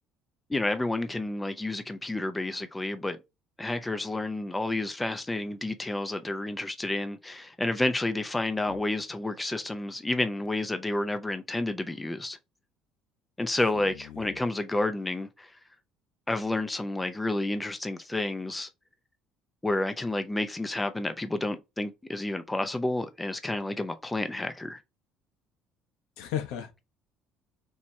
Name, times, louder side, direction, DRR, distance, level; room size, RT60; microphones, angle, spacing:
voice 1, 0.5-3.2 3.6-12.4 13.4-15.5 16.3-18.7 19.6-24.8, left 2 dB, 10° left, 0.6 m, -30 dB
voice 2, 13.7-14.4 26.2-26.8, left 10 dB, 85° left, 1.1 m, -36 dB
4.5 x 2.9 x 3.3 m
cardioid pair, 110°, 0 cm